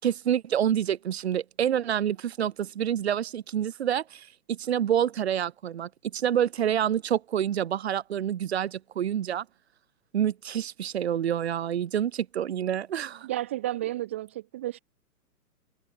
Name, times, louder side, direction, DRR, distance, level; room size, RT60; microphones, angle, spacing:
voice 1, 0.0-9.4 10.1-13.3, right 9 dB, 40° right, 7.3 m, -27 dB
voice 2, 13.2-14.8, right 14 dB, 10° right, 0.9 m, -32 dB
hypercardioid pair, 180°, 47 cm